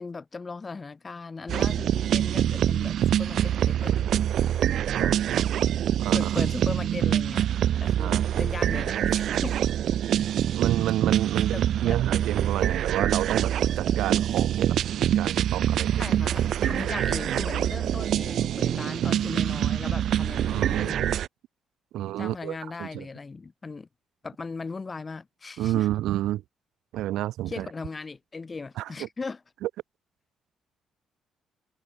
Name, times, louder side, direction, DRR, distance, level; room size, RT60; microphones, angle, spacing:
voice 1, 0.0-4.1 4.5-5.1 6.1-7.5 7.8-9.6 11.8-12.0 16.0-21.1 22.2-23.9 24.2-25.9 27.5-29.4, left 4 dB, 30° left, 4.3 m, -38 dB
sound 1, 1.5-21.3, right 10 dB, 70° right, 0.8 m, -25 dB
voice 2, 4.9-5.5 6.0-6.3 8.0-8.4 10.6-15.9 20.5-21.0 21.9-23.0 25.6-26.4 26.9-27.7 28.8-28.9 29.6-29.7, right 14 dB, 85° right, 1.4 m, -30 dB
cardioid pair, 90°, 0 cm